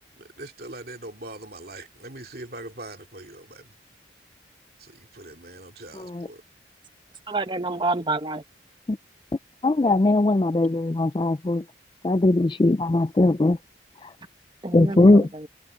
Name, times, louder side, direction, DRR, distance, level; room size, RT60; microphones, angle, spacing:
voice 1, 0.0-3.7 4.8-6.4, right 2 dB, 55° right, 2.6 m, -42 dB
voice 2, 7.3-8.4 14.6-15.5, right 2 dB, 25° right, 1.0 m, -28 dB
voice 3, 9.6-11.6 12.0-13.6 14.7-15.3, left 2 dB, 25° left, 0.4 m, -19 dB
head